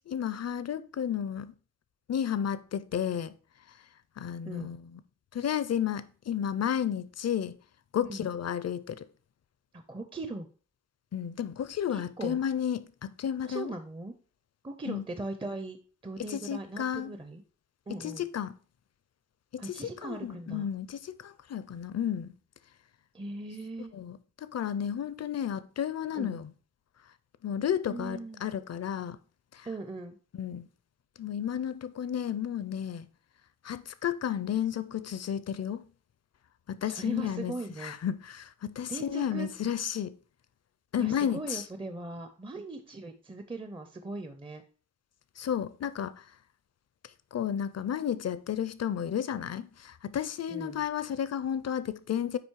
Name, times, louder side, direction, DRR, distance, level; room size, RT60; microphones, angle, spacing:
voice 1, 0.1-1.5 2.1-3.3 4.2-5.0 5.3-7.6 7.9-9.1 11.1-13.7 14.9-15.0 16.3-17.1 18.0-18.5 19.5-22.3 23.9-26.5 27.4-29.2 29.5-29.7 30.3-30.7 31.2-33.1 33.6-35.8 36.7-37.5 37.8-40.2 40.9-41.6 45.4-46.2 47.3-52.4, left 9 dB, 55° left, 0.5 m, -32 dB
voice 2, 9.7-10.5 11.9-12.4 13.4-14.1 14.6-15.8 16.0-17.4 17.9-18.2 19.6-20.7 23.1-23.9 26.1-26.4 27.9-28.4 29.7-30.2 36.8-37.9 38.9-39.5 41.0-44.6 50.5-50.8, right 2 dB, 15° right, 0.5 m, -39 dB
9.1 x 3.1 x 4.5 m
wide cardioid pair, 140°, 32 cm